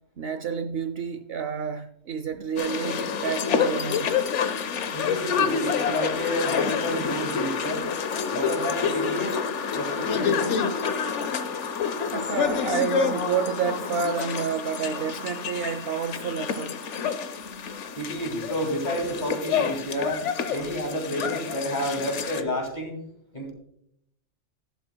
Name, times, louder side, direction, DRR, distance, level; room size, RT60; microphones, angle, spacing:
voice 1, 0.2-4.1 12.1-16.8, right 6 dB, 60° right, 0.8 m, -29 dB
sound 1, 2.6-22.4, left 7 dB, 75° left, 1.1 m, -28 dB
voice 2, 4.9-7.9 8.3-9.4 9.7-10.7 18.0-20.2 20.5-23.0 23.3-23.5, equal, 35° left, 2.5 m, -30 dB
11.5 x 11.5 x 2.3 m
omnidirectional pair, 1.3 m